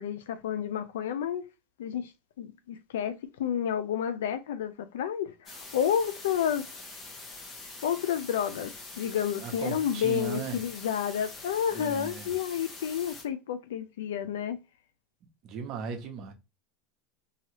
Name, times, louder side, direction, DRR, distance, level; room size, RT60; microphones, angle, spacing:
voice 1, 0.0-1.4 1.8-2.1 2.4-6.7 7.8-8.7 9.0-14.6, left 9 dB, 90° left, 0.4 m, -30 dB
sound 1, 5.5-13.2, left 3 dB, 25° left, 0.9 m, -44 dB
voice 2, 9.4-10.6 11.7-12.3 15.4-16.3, right 6 dB, 50° right, 0.8 m, -37 dB
2.7 x 2.3 x 2.9 m
supercardioid pair, 125°, 0 cm